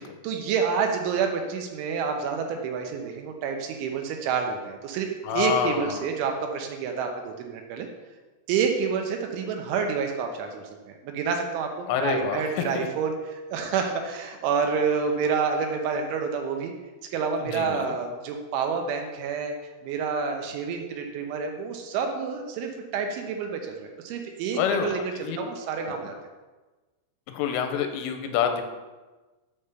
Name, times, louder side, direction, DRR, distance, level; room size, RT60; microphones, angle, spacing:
voice 1, 0.0-7.9 8.5-16.7 17.1-19.5 19.8-26.1, right 6 dB, 75° right, 3 dB, 3.2 m, -28 dB
voice 2, 5.2-6.1 11.9-12.9 17.4-18.0 24.5-25.4 27.3-28.6, left 8 dB, 90° left, 6 dB, 3.3 m, -27 dB
9.0 x 5.1 x 6.8 m, 1.2 s
omnidirectional pair, 5.8 m